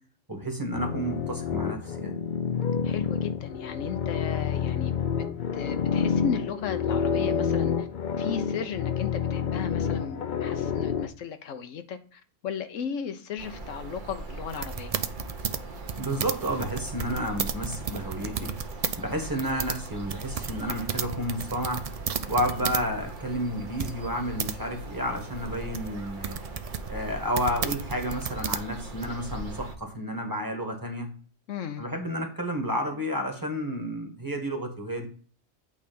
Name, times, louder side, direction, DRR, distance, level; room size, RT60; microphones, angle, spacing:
voice 1, 0.3-2.2 16.0-18.5 19.0-21.9 22.3-26.4 26.9-31.1 31.8-35.1, equal, 15° right, 1.3 m, -31 dB
sound 1, 0.7-11.1, left 7 dB, 50° left, 0.6 m, -28 dB
voice 2, 2.8-5.3 5.5-7.9 8.2-14.9 31.5-31.8, left 7 dB, 80° left, 1.1 m, -35 dB
sound 2, 13.4-29.8, right 2 dB, 45° right, 1.0 m, -40 dB
sound 3, 14.5-19.0 19.3-22.9 23.2-23.3 23.8-24.5 25.2-29.1, right 7 dB, 70° right, 0.3 m, -33 dB
8.5 x 3.4 x 5.1 m
omnidirectional pair, 1.3 m